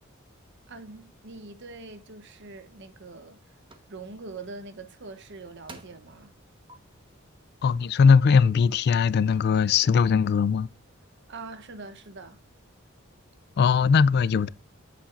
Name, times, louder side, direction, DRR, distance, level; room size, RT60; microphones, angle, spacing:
voice 1, 0.7-3.4 3.9-6.3 11.3-12.4, right 3 dB, 60° right, 0.9 m, -43 dB
sound 1, 3.7-3.9 5.1-5.2 5.7-6.1 6.7-6.8, right 2 dB, 25° right, 1.1 m, -47 dB
voice 2, 7.6-10.7 13.6-14.5, left 6 dB, 50° left, 0.3 m, -20 dB
8.7 x 7.3 x 2.5 m
head